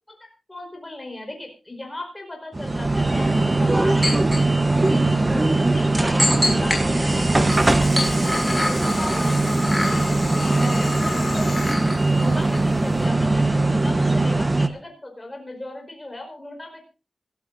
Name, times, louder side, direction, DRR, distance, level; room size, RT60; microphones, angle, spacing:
voice 1, 0.1-4.2 4.5-9.4 9.8-11.6 12.1-16.8, left 2 dB, 15° left, 3 dB, 4.8 m, -37 dB
sound 1, 2.5-14.7, right 2 dB, 20° right, 1.0 m, -20 dB
sound 2, 4.0-4.4 4.8-4.9 6.2-6.8 7.3-13.3 13.5-13.6, left 1 dB, ahead, 6.1 m, -28 dB
sound 3, 7.1-13.0, left 3 dB, 45° left, 7.3 m, -38 dB
26.5 x 13.0 x 2.7 m, 0.33 s
wide cardioid pair, 155°, 0 cm